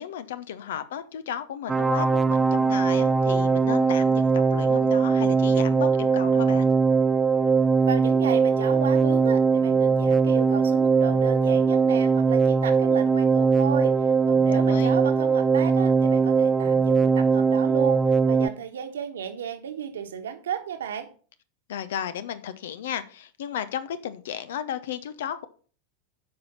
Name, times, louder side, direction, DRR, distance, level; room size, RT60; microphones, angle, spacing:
voice 1, 0.0-6.7 14.5-15.0 21.7-25.5, left 9 dB, 60° left, 14 dB, 0.8 m, -34 dB
sound 1, 1.7-18.5, right 5 dB, 15° right, 0.5 m, -21 dB
voice 2, 7.8-18.0 18.3-21.1, right 8 dB, 65° right, 7 dB, 1.4 m, -34 dB
8.9 x 5.6 x 5.8 m, 0.41 s
figure-of-eight pair, 90°, 0 cm